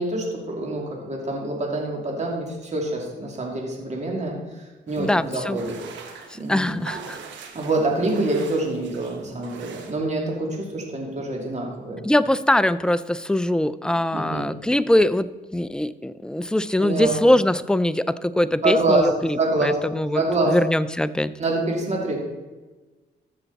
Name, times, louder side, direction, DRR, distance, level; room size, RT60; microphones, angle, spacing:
voice 1, 0.0-6.8 7.5-12.0 14.1-14.5 16.8-17.2 18.6-19.1 19.4-19.8 20.1-20.6 21.4-22.2, right 2 dB, 40° right, -1 dB, 2.7 m, -26 dB
sound 1, 4.9-9.9, right 6 dB, 85° right, 1.3 m, -42 dB
voice 2, 5.0-5.6 6.3-7.2 12.0-21.3, left 1 dB, 5° left, 14 dB, 0.4 m, -22 dB
13.0 x 6.8 x 4.1 m, 1.2 s
cardioid pair, 80°, 18 cm